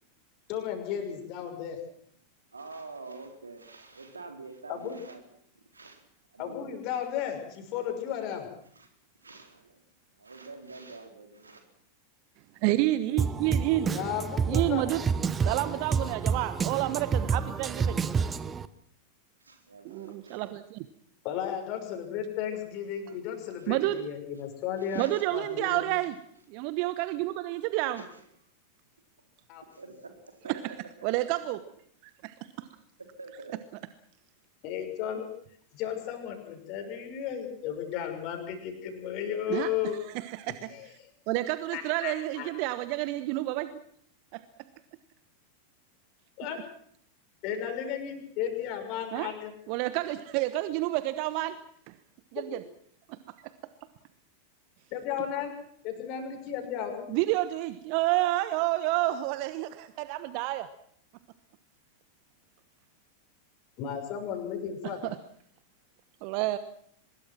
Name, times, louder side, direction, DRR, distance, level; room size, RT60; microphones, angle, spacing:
voice 1, 0.5-1.8 4.7-5.0 6.4-8.5 13.9-14.8 21.2-25.0 25.3-25.9 29.5-29.6 34.6-35.3 35.7-40.0 40.7-40.9 41.7-42.5 46.4-46.6 47.4-49.5 52.4-52.5 54.9-55.5 55.8-57.1 63.8-65.0, left 9 dB, 40° left, 5 dB, 6.1 m, -34 dB
voice 2, 2.5-5.2 5.7-6.0 6.3-6.8 8.8-8.9 9.2-9.8 10.2-11.6 19.4-20.5 24.8-25.3 28.0-28.2 29.8-30.8 33.1-33.5, right 3 dB, 75° right, 5 dB, 4.1 m, -46 dB
voice 3, 12.6-13.9 14.5-15.0 15.4-18.0 19.8-20.9 23.7-24.0 24.9-26.2 26.5-28.0 30.4-30.7 31.0-31.6 32.2-32.6 39.5-40.9 41.3-43.7 44.3-44.4 49.1-49.3 49.7-51.6 52.3-52.6 53.1-53.2 57.1-60.7 65.0-65.2 66.2-66.6, right 16 dB, 45° right, 13 dB, 1.1 m, -29 dB
Drum kit, 13.2-18.7, right 6 dB, 20° right, 1.2 m, -29 dB
24.0 x 21.5 x 6.1 m, 0.65 s
figure-of-eight pair, 90°, 0 cm